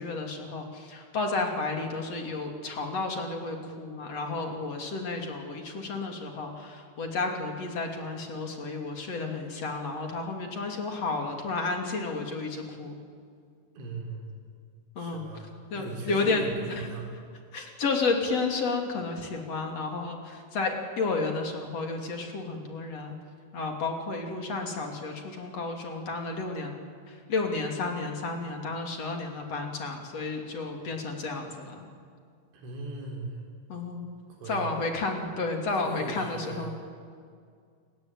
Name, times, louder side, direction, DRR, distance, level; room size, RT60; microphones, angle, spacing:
voice 1, 0.0-13.0 15.0-15.3 15.7-16.9 17.5-23.2 23.5-26.8 27.1-31.9 33.7-34.0 34.5-36.7, left 3 dB, 40° left, 2 dB, 3.5 m, -32 dB
voice 2, 13.7-14.2 15.0-15.5 15.7-17.1 32.5-33.4 34.3-34.7 35.8-36.7, right 3 dB, 80° right, 0 dB, 6.5 m, -38 dB
29.5 x 22.0 x 9.1 m, 2.2 s
omnidirectional pair, 5.5 m